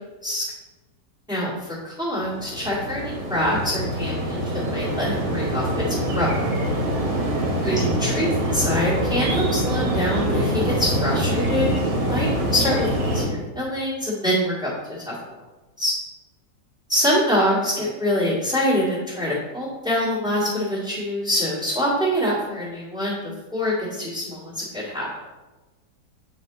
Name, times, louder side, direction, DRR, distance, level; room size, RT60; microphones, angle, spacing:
voice 1, 1.8-6.4 7.6-14.7 15.0-15.1 15.8-15.9 16.9-25.1, equal, ahead, -10 dB, 1.7 m, -25 dB
sound 1, 2.2-13.3, right 1 dB, 85° right, 2.1 m, -24 dB
7.8 x 4.3 x 3.9 m, 1.2 s
omnidirectional pair, 1.8 m